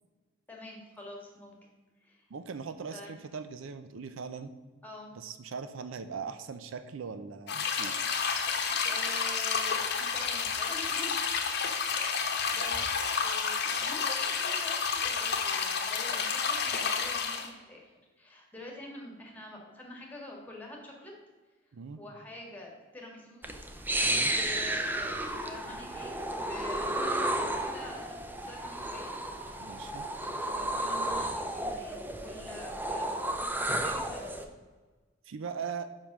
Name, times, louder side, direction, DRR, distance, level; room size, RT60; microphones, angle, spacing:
voice 1, 0.5-1.6 2.0-2.3 2.9-3.1 4.8-5.1 8.7-11.2 11.8-12.1 12.5-12.9 13.2-17.8 18.2-21.1 22.0-23.6 24.2-29.1 30.2-34.5, left 1 dB, 10° left, -1 dB, 1.6 m, -46 dB
voice 2, 2.3-4.5 5.2-8.0 21.7-22.0 24.0-24.3 29.6-30.1 35.3-35.9, right 5 dB, 70° right, 11 dB, 0.5 m, -40 dB
sound 1, 7.5-17.5, left 6 dB, 55° left, 0.9 m, -30 dB
sound 2, 23.4-34.4, right 1 dB, 10° right, 0.5 m, -33 dB
5.7 x 5.2 x 6.0 m, 1.3 s
head